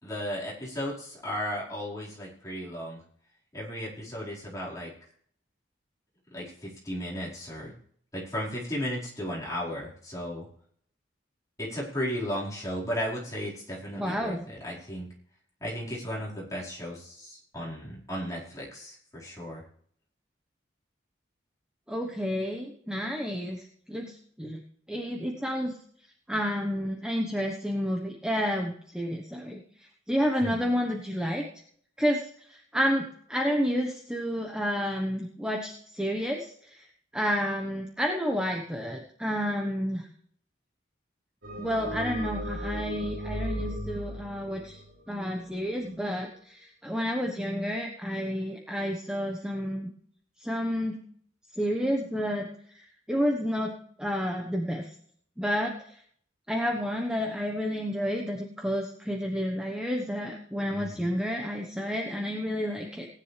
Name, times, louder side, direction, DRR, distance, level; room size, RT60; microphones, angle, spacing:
voice 1, 0.0-3.0 3.5-4.9 6.3-7.7 8.1-10.5 11.6-15.1 15.6-19.6 30.4-30.6 60.7-61.0, equal, 15° left, -6 dB, 4.6 m, -35 dB
voice 2, 14.0-14.4 21.9-24.6 24.9-25.8 26.3-29.6 30.1-31.4 32.0-36.8 37.1-40.0 41.6-44.8 45.1-49.9 50.4-51.0 51.6-52.5 53.1-54.9 55.4-55.7 56.5-63.1, equal, 5° right, 1 dB, 1.1 m, -30 dB
sound 1, 41.4-45.8, right 1 dB, 65° right, 4.9 m, -36 dB
18.5 x 10.0 x 3.4 m, 0.62 s
head